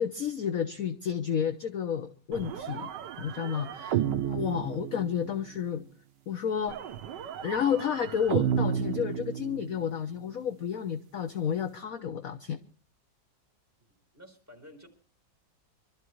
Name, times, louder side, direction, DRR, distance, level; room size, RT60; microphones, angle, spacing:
voice 1, 0.0-2.9 3.2-5.8 6.3-6.8 7.4-12.6, left 8 dB, 55° left, 9 dB, 1.1 m, -31 dB
sound 1, 2.3-5.6 6.7-9.9, right 9 dB, 75° right, 1.5 m, -32 dB
voice 2, 14.1-14.9, equal, 10° right, 1 dB, 4.0 m, -51 dB
25.0 x 13.0 x 3.1 m, 0.40 s
omnidirectional pair, 2.0 m